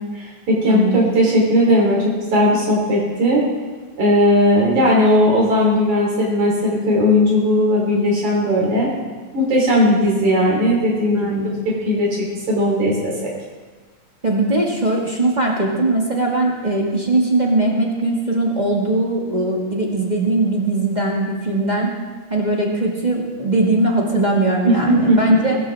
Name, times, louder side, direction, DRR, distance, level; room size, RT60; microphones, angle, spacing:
voice 1, 0.1-3.4 4.0-8.9 9.3-11.3 11.7-13.3 24.6-25.2, equal, 65° right, -4 dB, 4.7 m, -17 dB
voice 2, 0.7-1.0 11.1-11.7 14.2-21.9 22.3-25.6, right 2 dB, 20° right, -2 dB, 1.3 m, -20 dB
22.0 x 13.5 x 3.5 m, 1.4 s
omnidirectional pair, 3.6 m